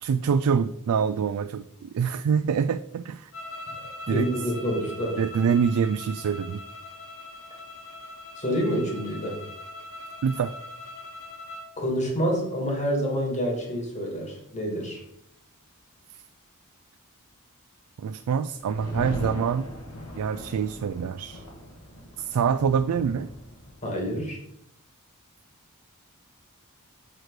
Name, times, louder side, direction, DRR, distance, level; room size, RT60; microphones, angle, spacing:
voice 1, 0.0-3.3 4.1-4.3 5.2-6.6 10.2-10.5 18.0-19.6 20.2-21.5 22.2-23.3, right 6 dB, 75° right, 11 dB, 0.3 m, -25 dB
sound 1, 3.3-11.7, left 2 dB, 60° left, 1.2 m, -41 dB
voice 2, 4.1-5.2 8.4-9.4 11.8-15.0 23.8-24.4, equal, 30° left, 0 dB, 2.2 m, -27 dB
sound 2, 18.6-24.1, equal, 90° left, 1.6 m, -39 dB
6.5 x 6.2 x 4.7 m, 0.74 s
head